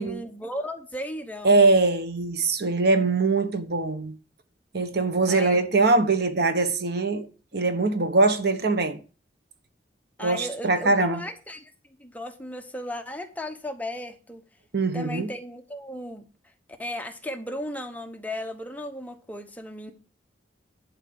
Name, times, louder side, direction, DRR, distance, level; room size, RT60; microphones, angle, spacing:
voice 1, 0.0-1.8 5.3-5.6 10.2-11.7 12.0-14.4 14.9-16.2 16.8-19.9, left 1 dB, 10° left, 1.0 m, -35 dB
voice 2, 1.4-4.1 4.7-7.3 7.5-9.0 10.2-11.2 14.7-15.3, right 3 dB, 60° right, 1.2 m, -22 dB
11.5 x 4.5 x 7.0 m
head